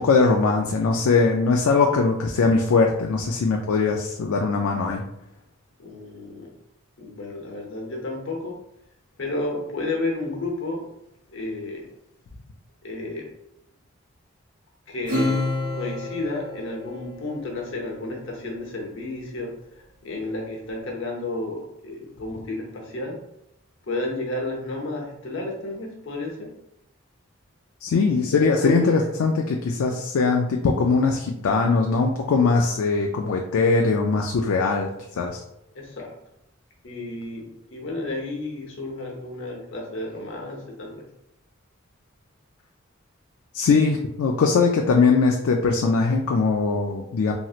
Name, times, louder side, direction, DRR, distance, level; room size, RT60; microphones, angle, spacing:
voice 1, 0.0-5.0 27.8-34.9 35.2-35.4 43.5-47.3, left 4 dB, 85° left, 1 dB, 0.3 m, -21 dB
voice 2, 5.8-6.5 7.0-8.6 9.2-10.8 11.3-11.8 12.8-13.3 14.9-15.4 15.7-19.5 20.0-23.2 23.9-26.5 28.0-29.1 35.7-36.1 36.8-41.0, left 2 dB, 65° left, 0 dB, 0.8 m, -31 dB
Acoustic guitar / Strum, 15.0-18.0, left 2 dB, 40° right, 1.2 m, -29 dB
3.0 x 2.8 x 2.4 m, 0.83 s
head